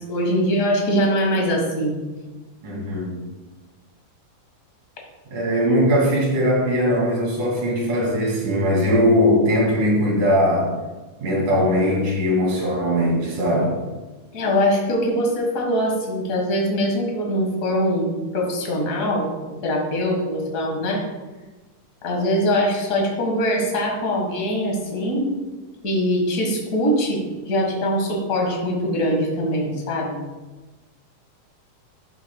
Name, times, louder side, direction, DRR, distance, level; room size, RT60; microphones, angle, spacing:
voice 1, 0.1-2.0 14.3-19.3 19.6-21.0 22.0-25.3 25.8-30.2, equal, 35° left, 0 dB, 1.6 m, -22 dB
voice 2, 2.6-3.2 5.3-10.7 11.2-13.8, equal, 70° right, -4 dB, 4.3 m, -20 dB
12.0 x 8.4 x 2.3 m, 1.2 s
omnidirectional pair, 3.8 m